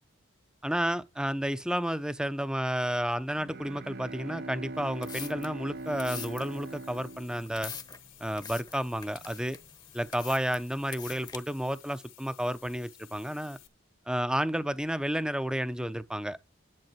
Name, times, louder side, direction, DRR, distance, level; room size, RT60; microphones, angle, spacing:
voice 1, 0.6-7.7 8.2-9.6 9.9-13.6 14.1-16.5, equal, 5° right, 0.7 m, -31 dB
Bowed string instrument, 3.3-8.2, right 2 dB, 50° right, 0.6 m, -42 dB
sound 1, 4.8-11.4, left 6 dB, 20° left, 1.0 m, -44 dB
sound 2, 5.7-13.7, left 13 dB, 80° left, 2.5 m, -56 dB
11.0 x 7.7 x 5.7 m
head